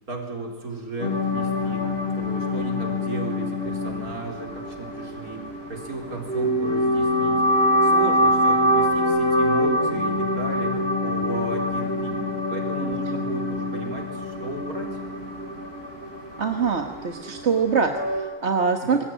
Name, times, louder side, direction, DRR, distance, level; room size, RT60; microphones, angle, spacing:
voice 1, 0.1-7.4 7.8-12.2 12.5-15.0 18.8-19.0, right 3 dB, 60° right, 2 dB, 4.7 m, -35 dB
sound 1, 1.0-18.2, left 1 dB, 35° left, 7.9 m, -25 dB
voice 2, 16.4-19.0, right 5 dB, 45° right, 5 dB, 1.6 m, -24 dB
26.0 x 21.5 x 9.0 m, 1.5 s
omnidirectional pair, 1.8 m